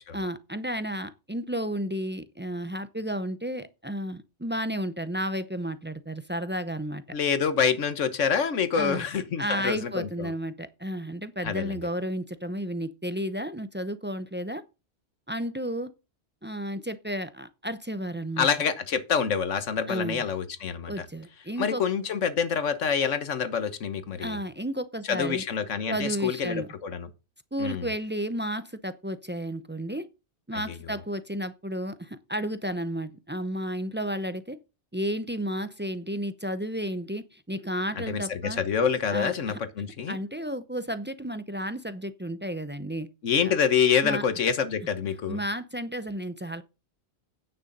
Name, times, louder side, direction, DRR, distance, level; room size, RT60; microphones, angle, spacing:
voice 1, 0.1-7.0 8.7-9.0 9.4-14.6 15.3-15.9 16.4-18.5 19.9-20.2 20.9-21.8 24.2-25.4 25.9-26.7 27.5-30.1 30.5-34.6 34.9-38.6 39.1-39.6 40.1-43.1 43.5-43.6 44.0-44.2 45.3-46.6, equal, 15° right, 0.4 m, -32 dB
voice 2, 7.1-10.3 11.4-11.8 18.4-21.1 21.6-24.4 25.1-27.1 27.6-27.9 30.5-30.8 38.0-40.2 43.2-45.4, left 7 dB, 90° left, 1.5 m, -27 dB
9.5 x 6.4 x 5.3 m
omnidirectional pair, 1.2 m